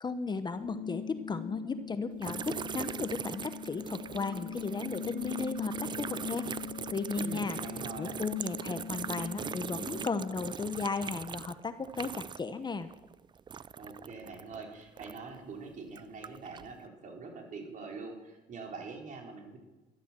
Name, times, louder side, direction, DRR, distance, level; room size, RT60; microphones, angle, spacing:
voice 1, 0.0-6.5 6.9-7.6 8.0-12.9, left 4 dB, 25° left, 11 dB, 0.9 m, -35 dB
sound 1, 0.5-10.5, left 6 dB, 70° left, 0.9 m, -42 dB
sound 2, 2.2-12.6 12.8-15.4 15.9-16.7, right 7 dB, 25° right, 0.4 m, -41 dB
voice 2, 7.2-8.2 13.8-19.6, right 3 dB, 50° right, 1 dB, 4.4 m, -44 dB
13.5 x 12.5 x 7.5 m, 1.1 s
cardioid pair, 110°, 17 cm